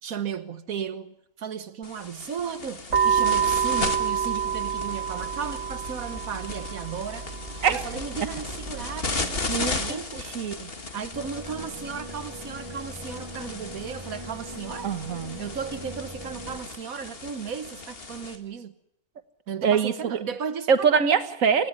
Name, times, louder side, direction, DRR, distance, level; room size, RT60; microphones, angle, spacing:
voice 1, 0.0-7.3 7.7-10.4 10.9-14.9 15.4-18.7 19.5-21.0, right 7 dB, 90° right, 9 dB, 1.6 m, -35 dB
sound 1, 1.8-18.3, left 3 dB, 45° left, 2.2 m, -36 dB
sound 2, 2.9-9.9, right 8 dB, 55° right, 2.4 m, -28 dB
voice 2, 9.2-10.7 14.8-15.4 19.6-20.2 20.7-21.7, right 6 dB, 75° right, 10 dB, 1.7 m, -24 dB
sound 3, 11.1-16.6, right 1 dB, 20° right, 1.6 m, -41 dB
28.5 x 16.0 x 9.9 m, 0.77 s
omnidirectional pair, 1.4 m